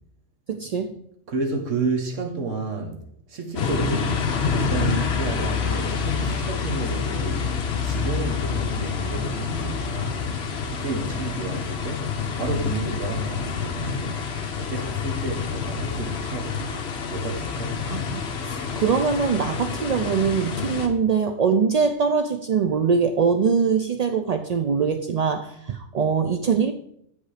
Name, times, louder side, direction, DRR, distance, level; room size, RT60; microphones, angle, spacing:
voice 1, 0.5-1.0 17.9-26.7, right 6 dB, 70° right, 0.3 m, -23 dB
voice 2, 1.3-3.0 3.3-4.2 4.6-7.6 7.8-10.3 10.7-14.2 14.6-17.8, right 3 dB, 85° right, 1.7 m, -31 dB
sound 1, 3.6-20.9, left 6 dB, 65° left, 1.1 m, -27 dB
8.2 x 5.3 x 4.9 m
omnidirectional pair, 1.2 m